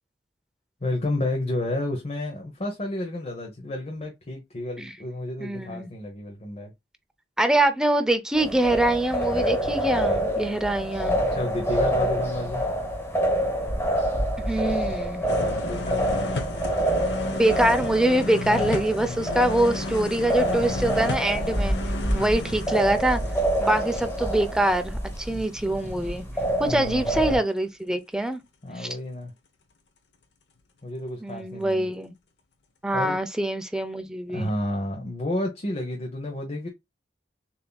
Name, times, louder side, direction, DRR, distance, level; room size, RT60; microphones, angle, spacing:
voice 1, 0.8-6.7 11.1-12.6 15.2-16.7 19.1-19.5 22.1-22.6 25.3-25.4 25.7-26.2 26.7-27.2 28.6-29.3 30.8-31.9 32.9-33.2 34.3-36.7, left 1 dB, 40° left, 0.9 m, -31 dB
voice 2, 5.4-5.9 7.4-11.1 14.4-15.2 17.4-21.8 22.1-23.2 23.6-26.2 26.6-28.4 28.8-28.9 31.2-32.1 32.8-34.5, right 1 dB, 5° right, 0.6 m, -24 dB
sound 1, 8.3-27.4, right 1 dB, 15° left, 1.2 m, -27 dB
sound 2, 15.3-25.1 25.4-25.5, left 2 dB, 75° left, 0.9 m, -34 dB
6.9 x 2.8 x 2.3 m
head